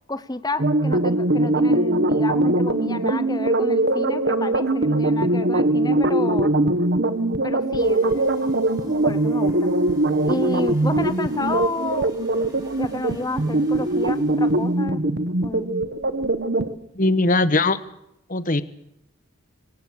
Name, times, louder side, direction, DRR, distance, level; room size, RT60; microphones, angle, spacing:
voice 1, 0.1-6.5 7.4-8.3 8.8-9.7 10.2-12.1 12.8-15.0 15.4-15.7, left 2 dB, 15° left, 13 dB, 0.8 m, -30 dB
sound 1, 0.6-16.7, right 2 dB, 50° right, 1.2 m, -21 dB
sound 2, 7.7-14.9, right 1 dB, 20° right, 5.0 m, -49 dB
voice 2, 17.0-17.8 18.3-18.6, left 2 dB, 35° left, 14 dB, 1.2 m, -19 dB
25.0 x 18.5 x 6.5 m, 0.78 s
head